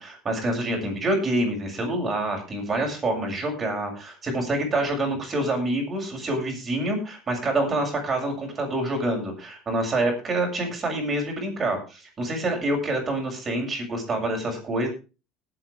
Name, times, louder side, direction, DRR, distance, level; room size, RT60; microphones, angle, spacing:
voice 1, 0.0-14.9, right 1 dB, 25° right, 1 dB, 7.3 m, -27 dB
19.5 x 9.0 x 3.5 m, 0.32 s
cardioid pair, 135°, 0 cm